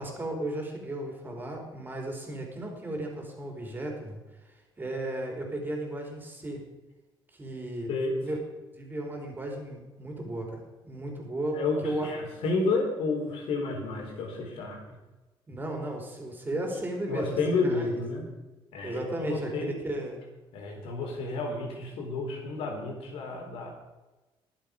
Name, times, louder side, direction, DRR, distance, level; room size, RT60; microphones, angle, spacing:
voice 1, 0.0-4.2 4.8-6.6 7.3-7.9 8.2-8.4 8.7-12.1 15.5-18.0 18.8-20.2, right 1 dB, 20° right, 2 dB, 3.9 m, -35 dB
voice 2, 7.9-8.2 11.5-14.9 16.5-16.6 17.1-18.3 18.7-19.7 20.5-23.7, left 3 dB, 85° left, 1 dB, 4.2 m, -31 dB
22.5 x 7.6 x 5.2 m, 1.1 s
cardioid pair, 120°, 9 cm